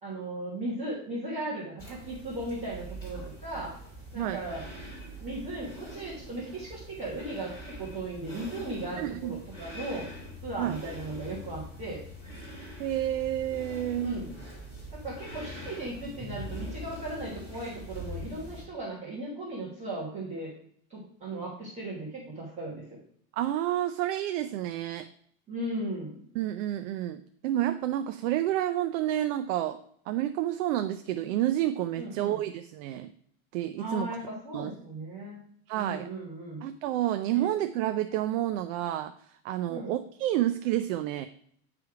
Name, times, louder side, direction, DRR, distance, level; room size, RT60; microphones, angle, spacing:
voice 1, 0.0-3.7 4.1-4.6 5.2-10.1 10.4-12.0 14.0-14.3 14.9-20.5 20.9-22.8 25.5-26.2 32.0-32.4 33.8-35.4 35.7-36.6 37.3-37.5 39.7-39.9, right 1 dB, 15° right, -7 dB, 1.3 m, -37 dB
sound 1, 1.8-18.6, equal, 5° left, 3.4 m, -43 dB
voice 2, 9.0-9.4 10.6-10.8 12.8-14.2 23.4-25.1 26.4-29.8 30.1-33.1 33.5-34.1 34.5-34.7 35.7-36.1 36.6-39.1 39.4-41.3, right 13 dB, 60° right, 9 dB, 0.5 m, -29 dB
9.2 x 3.5 x 4.7 m, 0.63 s
supercardioid pair, 175°, 44 cm